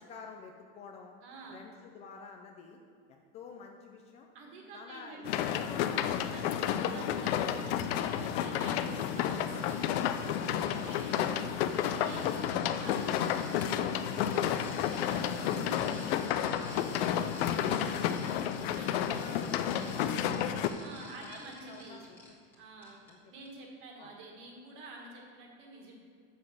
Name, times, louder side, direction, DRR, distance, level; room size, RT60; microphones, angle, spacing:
voice 1, 0.0-1.1 1.5-2.8 3.1-4.3 4.7-6.2 7.3-7.6 10.4-10.9 14.5-14.7 15.5-17.3 17.7-17.9 18.6-20.7 21.0-22.2 23.1-23.2 24.0-24.1, left 5 dB, 20° left, 3 dB, 0.4 m, -49 dB
voice 2, 1.2-1.7 4.3-5.7 6.1-9.8 10.1-13.9 14.3-16.4 17.3-18.1 18.7-18.9 20.8-22.0 22.6-23.0 23.3-25.9, right 3 dB, 40° right, 0 dB, 1.8 m, -49 dB
sound 1, 5.2-20.7, left 9 dB, 80° left, 0.6 m, -31 dB
sound 2, 6.1-22.6 22.8-23.1 23.5-23.6, left 2 dB, 5° left, 1.6 m, -52 dB
7.4 x 6.9 x 6.3 m, 2.2 s
cardioid pair, 175°, 30 cm